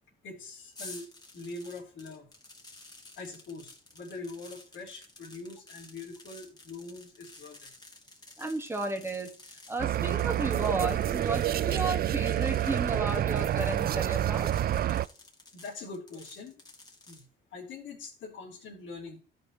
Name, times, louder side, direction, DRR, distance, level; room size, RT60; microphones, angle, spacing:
voice 1, 0.2-1.1 1.3-2.3 3.2-7.7 15.5-16.6 17.1-17.2 17.5-19.2, left 3 dB, 75° left, -5 dB, 3.6 m, -43 dB
sound 1, 0.7-17.2, left 2 dB, 20° left, 2.3 m, -52 dB
voice 2, 8.4-14.5, right 2 dB, 10° right, 5 dB, 1.6 m, -34 dB
sound 2, 9.8-15.1, right 12 dB, 50° right, 0.4 m, -28 dB
14.5 x 5.5 x 3.1 m, 0.40 s
cardioid pair, 90°, 20 cm